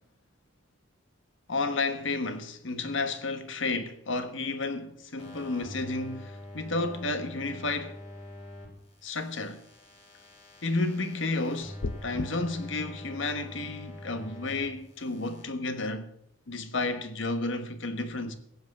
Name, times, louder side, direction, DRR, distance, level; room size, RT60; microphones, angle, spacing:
voice 1, 1.5-8.0 9.0-9.6 10.6-16.1 16.5-18.4, left 3 dB, 70° left, 1.3 m, -32 dB
sound 1, 5.2-8.7 9.0-14.7 15.0-15.4, left 1 dB, 30° left, 3.3 m, -45 dB
sound 2, 11.8-12.3, left 3 dB, 90° left, 0.7 m, -33 dB
15.5 x 8.2 x 6.5 m
head